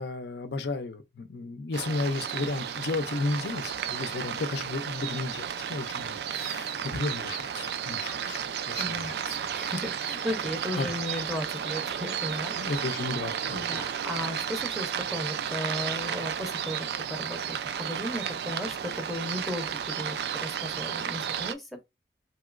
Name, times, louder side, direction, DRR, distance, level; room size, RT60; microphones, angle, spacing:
voice 1, 0.0-9.4 10.8-10.9 12.6-13.9, left 3 dB, 75° left, 0.5 m, -33 dB
sound 1, 1.7-21.5, right 8 dB, 70° right, 0.3 m, -33 dB
voice 2, 8.8-13.1 13.5-21.8, left 1 dB, ahead, 0.6 m, -36 dB
3.0 x 2.9 x 2.4 m
head